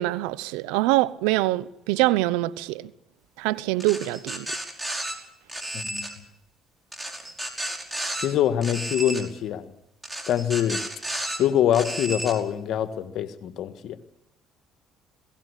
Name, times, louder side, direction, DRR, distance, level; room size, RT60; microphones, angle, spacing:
voice 1, 0.0-2.9 3.4-4.5, right 17 dB, 80° right, 0.8 m, -24 dB
sound 1, 3.8-5.1 5.5-6.1 6.9-8.3 8.6-9.2 10.0-11.4 11.7-12.3, right 1 dB, 15° right, 5.2 m, -32 dB
voice 2, 5.7-6.1 8.2-9.7 10.3-10.8 11.4-14.0, left 10 dB, 65° left, 1.6 m, -24 dB
21.0 x 18.0 x 8.3 m
hypercardioid pair, 60°, 0 cm